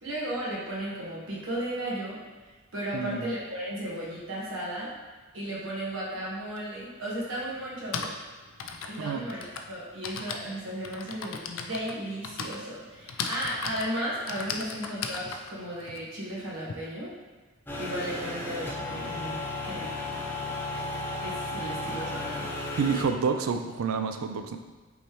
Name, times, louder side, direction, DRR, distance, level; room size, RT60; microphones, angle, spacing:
voice 1, 0.0-2.2 2.7-4.9 5.3-8.1 8.9-9.4 9.7-17.1 17.8-19.4 19.6-20.0 21.2-22.5, right 1 dB, 65° right, -6 dB, 1.3 m, -35 dB
voice 2, 2.9-3.3 9.0-9.2 22.8-24.6, right 5 dB, 80° right, 7 dB, 0.4 m, -28 dB
Typing, 6.6-6.7 7.6-16.7, left 5 dB, 70° left, 0.4 m, -37 dB
sound 1, 17.7-23.0, left 2 dB, 10° left, 0.5 m, -34 dB
5.4 x 3.2 x 3.0 m, 1.3 s
head